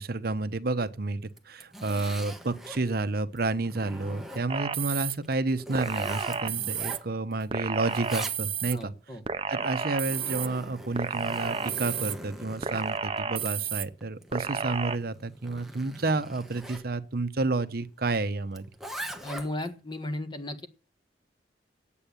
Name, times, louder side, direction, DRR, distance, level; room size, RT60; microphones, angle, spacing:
voice 1, 0.0-8.9 9.5-18.6, right 3 dB, 55° right, 0.8 m, -30 dB
Zipper (clothing), 1.3-2.9 3.4-4.7 5.2-7.4 7.7-8.8 9.7-16.9 18.5-19.7, right 1 dB, ahead, 1.1 m, -42 dB
sound 1, 4.5-5.2 5.7-7.0 7.5-8.7 9.3-10.5 11.0-12.1 12.6-13.9 14.3-15.0, right 6 dB, 30° right, 0.6 m, -31 dB
voice 2, 8.7-9.2 19.2-20.7, left 1 dB, 25° left, 1.5 m, -35 dB
sound 2, 13.1-15.6, left 5 dB, 55° left, 5.3 m, -65 dB
9.0 x 8.6 x 8.6 m
head